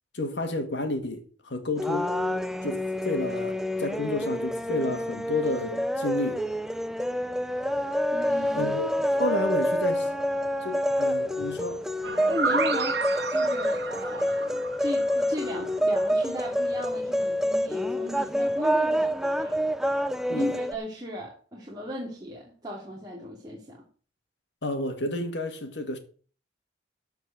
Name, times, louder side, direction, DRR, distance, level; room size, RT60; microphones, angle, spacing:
voice 1, 0.1-2.1 2.6-6.4 8.6-8.9 9.2-10.1 10.6-11.9 20.3-20.5 24.6-26.0, left 2 dB, 80° left, 2.0 m, -31 dB
sound 1, 1.8-20.8, equal, 5° right, 0.5 m, -27 dB
voice 2, 8.1-8.8 12.3-13.0 13.3-19.6 20.3-23.8, left 1 dB, 25° right, 2.6 m, -36 dB
sound 2, 12.0-15.8, right 4 dB, 75° right, 1.3 m, -31 dB
13.0 x 4.6 x 7.7 m
head